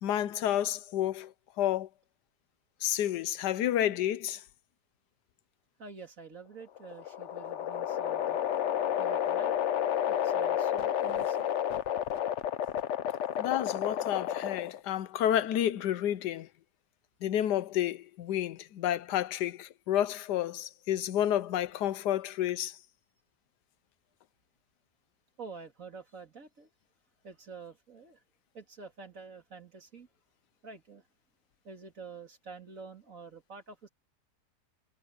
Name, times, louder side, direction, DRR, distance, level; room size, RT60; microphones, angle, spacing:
voice 1, 0.0-1.9 2.8-4.4 13.4-16.5 17.2-22.8, left 11 dB, 80° left, 1.3 m, -30 dB
voice 2, 5.8-8.4 9.0-9.5 10.1-11.5 25.4-26.7 27.2-28.2 28.5-30.1 30.6-31.1 31.6-33.9, right 4 dB, 50° right, 3.1 m, -47 dB
sound 1, 6.6-14.9, left 10 dB, 60° left, 0.8 m, -31 dB
omnidirectional pair, 1.8 m